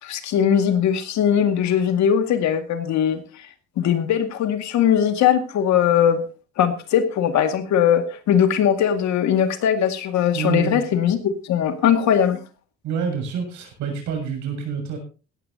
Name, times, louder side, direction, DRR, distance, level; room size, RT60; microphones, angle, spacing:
voice 1, 0.0-3.2 3.8-6.2 6.6-12.4, left 9 dB, 70° left, 7 dB, 2.2 m, -20 dB
voice 2, 10.3-10.8 12.8-15.0, right 6 dB, 75° right, 3 dB, 7.2 m, -27 dB
17.0 x 14.5 x 2.9 m, 0.33 s
cardioid pair, 145°, 29 cm